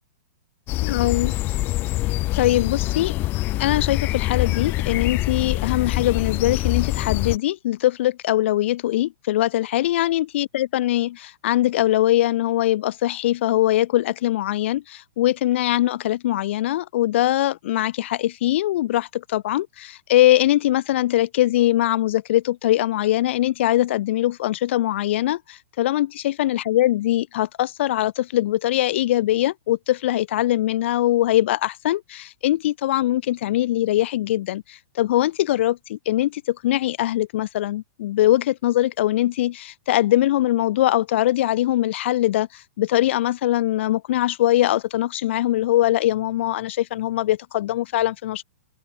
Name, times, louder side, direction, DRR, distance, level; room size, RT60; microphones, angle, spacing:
sound 1, 0.7-7.4, left 18 dB, 25° left, 0.5 m, -24 dB
voice 1, 0.8-1.3 2.4-3.1 3.6-48.4, left 14 dB, 55° left, 1.8 m, -22 dB
open air
hypercardioid pair, 135°, 8 cm